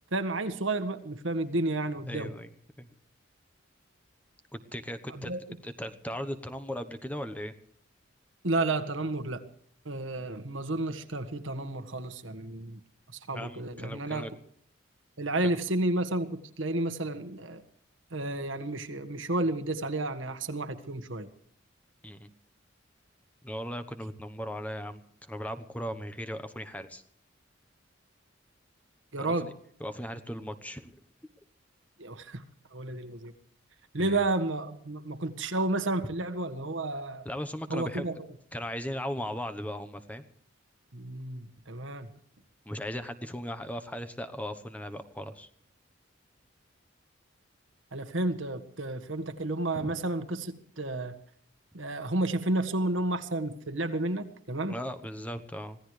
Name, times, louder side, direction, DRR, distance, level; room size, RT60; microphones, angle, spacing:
voice 1, 0.1-2.3 5.1-5.6 8.4-9.4 9.8-12.8 13.3-14.3 15.2-17.6 18.1-21.3 29.1-29.5 32.0-32.4 32.7-33.3 33.9-37.3 37.7-38.2 40.9-42.1 47.9-51.2 51.7-54.8, right 2 dB, 80° right, 8 dB, 1.7 m, -31 dB
voice 2, 2.1-2.5 2.8-2.9 4.5-5.3 5.6-7.5 13.3-14.3 22.0-22.3 23.4-27.0 29.2-29.5 29.8-31.0 34.0-34.2 37.2-38.1 38.5-40.2 42.7-45.5 49.7-49.9 54.7-55.8, equal, 10° left, 9 dB, 1.0 m, -37 dB
25.0 x 17.0 x 3.3 m, 0.62 s
head